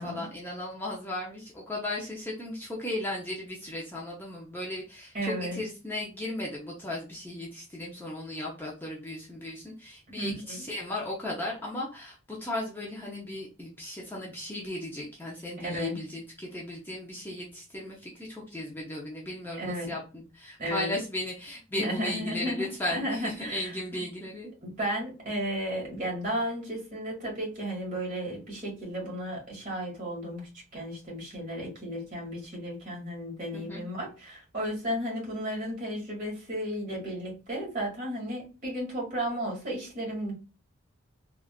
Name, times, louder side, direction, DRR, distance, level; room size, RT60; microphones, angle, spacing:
voice 1, 0.0-24.5 33.5-33.8, left 1 dB, 10° left, -4 dB, 0.6 m, -36 dB
voice 2, 5.1-5.6 10.2-10.6 15.6-16.0 19.6-20.0 20.6-20.9 21.7-24.0 24.6-40.3, equal, 35° right, -3 dB, 1.5 m, -34 dB
3.5 x 2.5 x 2.3 m, 0.31 s
head